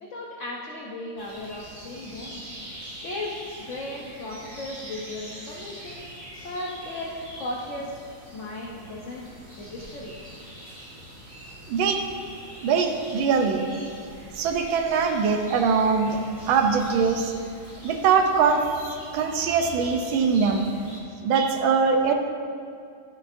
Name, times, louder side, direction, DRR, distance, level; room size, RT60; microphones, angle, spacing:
voice 1, 0.0-2.4 3.0-6.0 6.4-7.9 8.3-9.2 9.6-10.1, left 1 dB, 60° left, -4 dB, 0.7 m, -36 dB
sound 1, 1.2-21.0, equal, 25° right, 1.4 m, -43 dB
voice 2, 11.7-12.0 12.6-13.7 14.3-16.2 16.5-17.3 17.8-18.6 19.1-20.7 21.2-22.1, right 5 dB, 70° right, 5 dB, 1.4 m, -22 dB
11.5 x 6.3 x 2.6 m, 2.4 s
omnidirectional pair, 2.4 m